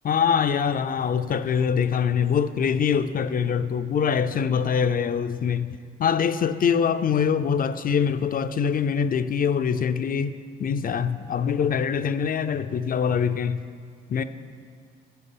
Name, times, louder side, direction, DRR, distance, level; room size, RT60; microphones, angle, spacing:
voice 1, 0.0-13.6 14.1-14.2, left 7 dB, 45° left, 11 dB, 0.5 m, -24 dB
13.0 x 8.3 x 5.4 m, 2.1 s
cardioid pair, 90°, 20 cm